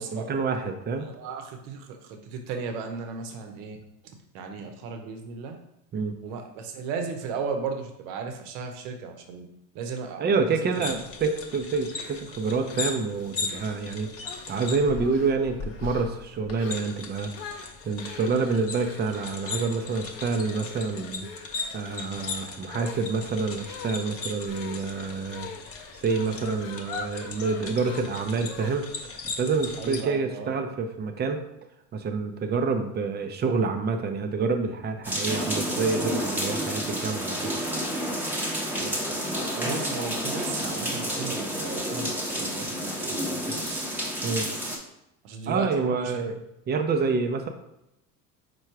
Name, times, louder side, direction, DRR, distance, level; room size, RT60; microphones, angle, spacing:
voice 1, 0.0-1.1 5.9-6.1 10.2-25.5 25.9-28.9 29.1-31.4 31.9-37.5 44.2-44.5 45.5-46.3 46.7-47.5, right 4 dB, 20° right, 5 dB, 0.5 m, -28 dB
voice 2, 1.0-3.8 4.3-5.6 6.2-9.5 9.7-11.0 29.8-30.5 38.7-39.3 39.6-43.9 45.2-46.3, right 5 dB, 65° right, 5 dB, 0.9 m, -36 dB
sound 1, 10.7-30.0, left 4 dB, 30° left, 0.7 m, -38 dB
sound 2, 11.9-14.6 15.0-15.5 15.8-16.1 16.6-16.9 17.3-29.0, left 5 dB, 70° left, 0.7 m, -43 dB
sound 3, 35.0-44.8, equal, 5° right, 0.9 m, -30 dB
4.6 x 2.2 x 4.6 m, 0.85 s
hypercardioid pair, 85°, 48 cm